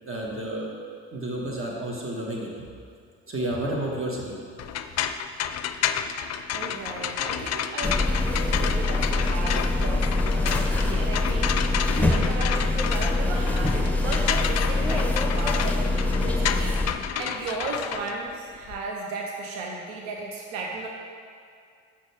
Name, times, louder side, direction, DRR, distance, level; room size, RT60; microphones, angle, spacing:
voice 1, 0.0-0.7 1.1-2.7 3.3-4.4, right 1 dB, 35° right, -2 dB, 1.8 m, -31 dB
sound 1, 4.6-18.8, left 9 dB, 45° left, 0.5 m, -31 dB
voice 2, 6.5-11.8 12.1-20.9, right 3 dB, 90° right, 0 dB, 0.7 m, -35 dB
sound 2, 7.8-16.9, left 2 dB, 5° left, 0.9 m, -24 dB
7.5 x 6.6 x 3.6 m, 2.3 s
hypercardioid pair, 55°, 36 cm